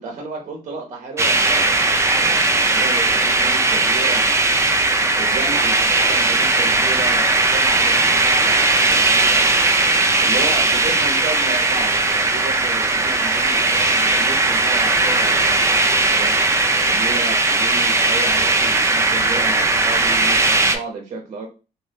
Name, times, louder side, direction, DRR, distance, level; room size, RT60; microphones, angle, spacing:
voice 1, 0.0-4.5 5.2-9.8 10.2-16.5 16.8-21.5, right 3 dB, 50° right, 1 dB, 0.7 m, -32 dB
sound 1, 1.2-20.8, right 2 dB, 15° right, 0.5 m, -18 dB
2.6 x 2.5 x 3.3 m, 0.32 s
cardioid pair, 95°, 16 cm